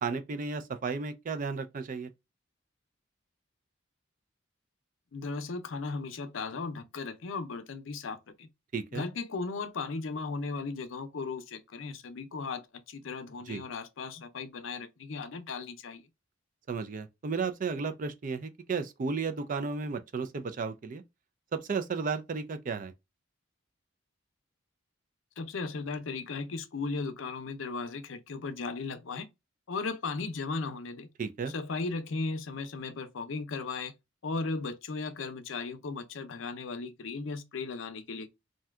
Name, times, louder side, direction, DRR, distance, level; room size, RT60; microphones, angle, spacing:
voice 1, 0.0-2.1 8.7-9.0 13.5-13.6 16.7-21.0 21.5-22.9 31.2-31.5, right 5 dB, 40° right, 0.4 m, -33 dB
voice 2, 5.1-8.5 8.9-16.1 25.4-29.3 29.7-31.1 31.5-33.9 34.2-38.3, left 4 dB, 75° left, 0.5 m, -36 dB
2.7 x 2.2 x 3.4 m
head